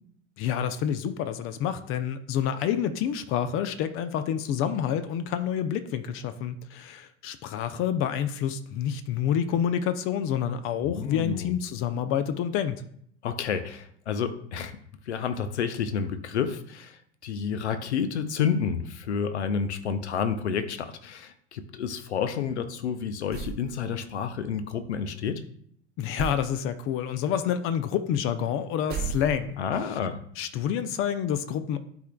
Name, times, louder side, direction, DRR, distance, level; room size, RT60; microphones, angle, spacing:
voice 1, 0.4-12.8 26.0-29.6 30.4-31.8, left 9 dB, 35° left, 11 dB, 0.6 m, -28 dB
voice 2, 10.8-11.6 13.2-14.8 15.1-25.4 29.6-30.2, left 7 dB, 70° left, 11 dB, 0.8 m, -30 dB
sound 1, 23.3-23.7 26.2-26.5 28.9-29.7, right 6 dB, 25° right, 0.9 m, -33 dB
11.5 x 4.4 x 2.2 m, 0.65 s
figure-of-eight pair, 80°, 35 cm